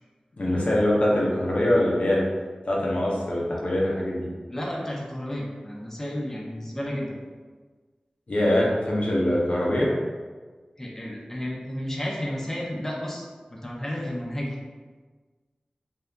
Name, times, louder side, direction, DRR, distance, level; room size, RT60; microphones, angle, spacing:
voice 1, 0.4-2.2 2.6-4.3 8.3-9.9, left 1 dB, 60° left, -5 dB, 0.5 m, -23 dB
voice 2, 4.5-7.1 10.8-14.5, left 1 dB, 15° left, -4 dB, 0.5 m, -32 dB
2.7 x 2.3 x 2.2 m, 1.4 s
cardioid pair, 45°, 3 cm